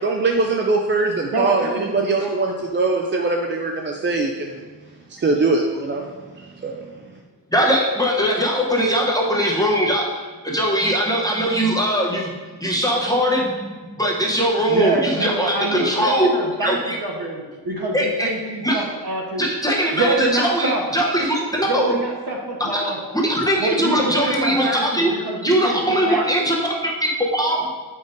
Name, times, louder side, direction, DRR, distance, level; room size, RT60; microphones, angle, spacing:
voice 1, 0.0-4.6 5.1-6.0 6.4-6.8, right 3 dB, 30° right, 1 dB, 0.3 m, -22 dB
voice 2, 1.3-2.5 14.7-19.5 19.9-20.8 21.7-23.0 23.6-26.3, right 2 dB, 55° right, -1 dB, 1.2 m, -26 dB
voice 3, 7.5-10.1 10.4-12.3 12.6-16.3 16.6-17.0 17.9-18.3 18.6-18.8 19.4-21.9 22.6-22.9 23.2-25.1 25.4-26.7 27.0-27.6, equal, 10° left, -2 dB, 0.7 m, -20 dB
7.7 x 5.3 x 2.5 m, 1.4 s
wide cardioid pair, 145°, 44 cm